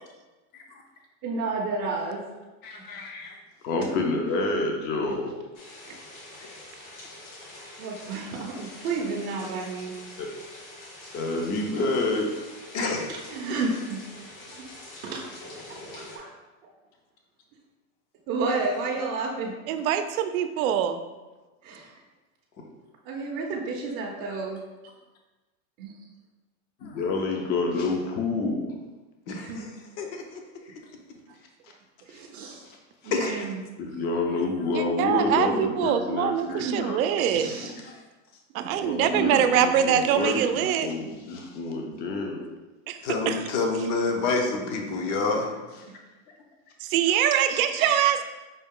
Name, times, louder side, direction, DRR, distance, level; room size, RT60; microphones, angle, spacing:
voice 1, 1.2-2.2 7.5-9.9 13.3-14.0 15.0-15.2 15.9-16.3 18.3-19.5 21.6-21.9 23.1-24.6 25.8-25.9 29.3-29.7 32.1-32.6 33.0-33.6 36.6-36.9 37.3-37.7 39.0-39.4 47.8-48.1, right 3 dB, 30° right, -3 dB, 0.5 m, -31 dB
voice 2, 2.6-3.3 3.6-5.4 10.2-10.3 11.1-12.4 26.8-28.7 33.8-37.0 37.3-38.0 38.8-42.5 47.7-47.8, left 3 dB, 25° left, 1 dB, 0.4 m, -28 dB
sound 1, 5.5-16.2, left 1 dB, 80° left, 1.3 m, -45 dB
voice 3, 12.7-13.1 29.3-30.4 33.1-33.5 43.0-45.5, left 3 dB, 55° left, 2 dB, 0.9 m, -28 dB
voice 4, 19.7-21.0 34.7-37.5 38.5-40.9 42.9-43.0 43.3-43.4 46.8-48.2, right 9 dB, 90° right, 9 dB, 0.5 m, -24 dB
5.3 x 2.3 x 3.6 m, 1.2 s
supercardioid pair, 145°, 41 cm